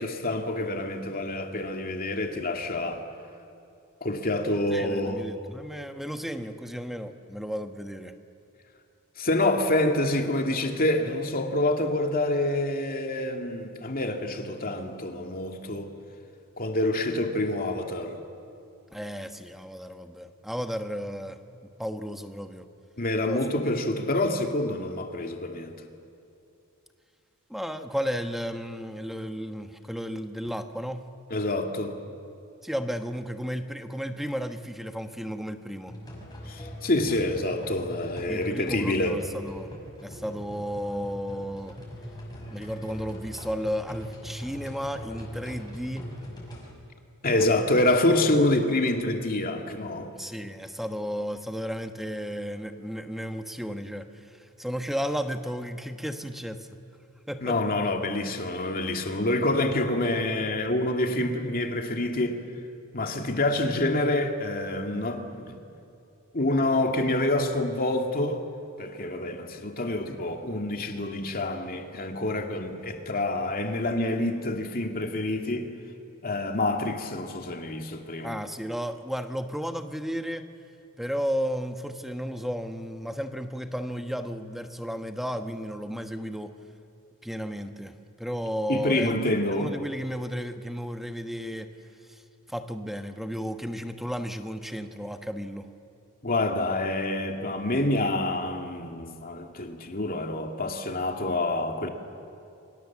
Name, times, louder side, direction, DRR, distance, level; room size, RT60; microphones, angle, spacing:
voice 1, 0.0-3.0 4.0-5.2 9.2-15.9 16.6-18.2 23.0-25.7 31.3-32.0 36.5-39.2 47.2-50.1 57.4-62.4 62.9-65.6 66.3-68.4 68.8-75.7 76.2-78.4 88.7-89.7 96.2-101.9, left 1 dB, 40° left, 3 dB, 2.4 m, -27 dB
voice 2, 4.7-8.2 18.9-22.7 23.2-23.4 27.5-31.1 32.6-36.0 38.3-39.7 40.0-41.8 42.5-46.1 47.3-47.7 50.2-56.7 57.3-57.8 58.5-58.6 78.2-80.5 81.0-86.6 87.2-91.7 92.1-92.2 92.5-95.7, equal, ahead, 7 dB, 1.2 m, -33 dB
sound 1, 35.9-46.7, equal, 20° left, 6.2 m, -42 dB
29.0 x 25.0 x 7.4 m, 2.7 s
head